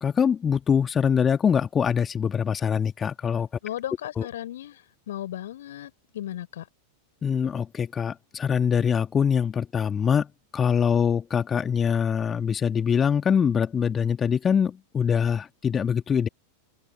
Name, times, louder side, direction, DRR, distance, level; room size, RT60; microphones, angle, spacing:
voice 1, 0.0-3.5 4.2-4.3 7.2-16.3, left 7 dB, 20° left, 2.3 m, -24 dB
voice 2, 3.6-6.7, left 12 dB, 60° left, 4.6 m, -36 dB
open air
figure-of-eight pair, 90°, 0 cm